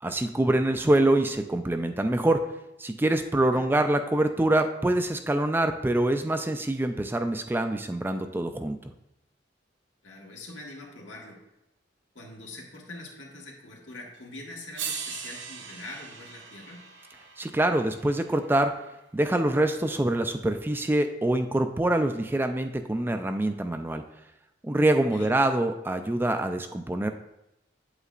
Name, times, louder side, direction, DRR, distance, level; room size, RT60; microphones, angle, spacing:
voice 1, 0.0-2.4 2.8-8.8 17.4-18.7 19.1-24.0 24.6-27.1, right 1 dB, 10° right, 7 dB, 0.3 m, -25 dB
voice 2, 10.0-11.4 12.1-16.8 25.1-25.3, left 2 dB, 85° left, -1 dB, 1.5 m, -43 dB
sound 1, 14.1-14.2 14.8-19.0 20.3-20.4, right 6 dB, 85° right, 1.0 m, -40 dB
8.3 x 8.2 x 2.5 m, 0.88 s
head